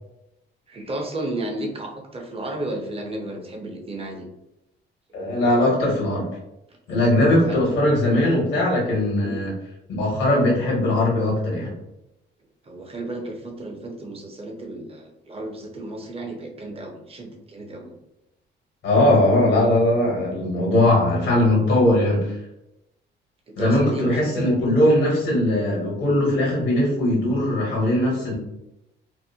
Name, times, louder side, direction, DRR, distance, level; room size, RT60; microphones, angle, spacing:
voice 1, 0.7-4.3 6.7-6.8 7.4-7.6 9.2-9.4 12.6-17.9 23.6-24.8, right 1 dB, 30° right, 2 dB, 0.6 m, -33 dB
voice 2, 5.1-6.3 6.9-9.5 9.9-11.7 18.8-22.3 23.6-28.4, left 1 dB, 85° left, -3 dB, 1.2 m, -20 dB
2.6 x 2.1 x 2.7 m, 0.89 s
cardioid pair, 90°, 20 cm